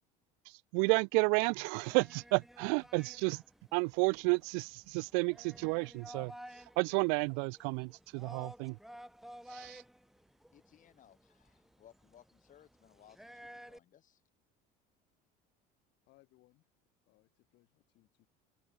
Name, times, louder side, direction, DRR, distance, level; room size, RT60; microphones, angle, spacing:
voice 1, 0.7-3.4 3.7-6.3 6.8-8.8 9.5-9.8, right 40 dB or more, 80° right, 0.5 m, -31 dB
sound 1, 1.7-13.8, equal, ahead, 1.5 m, -54 dB
voice 2, 10.5-14.2, left 10 dB, 40° left, 5.7 m, -62 dB
voice 3, 16.0-16.7 17.1-18.3, left 19 dB, 65° left, 7.6 m, -68 dB
open air
cardioid pair, 120°, 20 cm